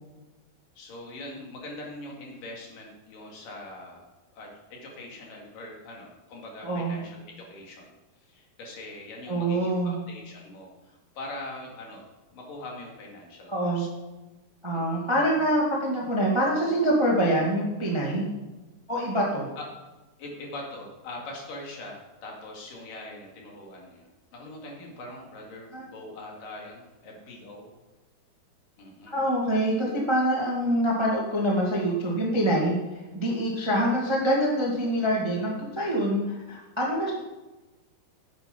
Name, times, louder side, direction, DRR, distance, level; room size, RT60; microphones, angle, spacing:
voice 1, 0.8-4.0 4.3-7.9 8.3-12.0 12.3-13.9 14.7-15.1 19.6-19.7 20.2-24.1 24.3-27.7 28.8-29.2 33.7-33.9, left 1 dB, 60° left, -1 dB, 3.6 m, -42 dB
voice 2, 6.6-6.9 9.3-10.0 13.5-13.8 14.6-18.3 18.9-19.5 25.7-25.8 29.1-32.8 33.1-37.1, right 1 dB, 20° right, -3 dB, 0.7 m, -25 dB
10.0 x 9.1 x 5.4 m, 1.1 s
omnidirectional pair, 4.7 m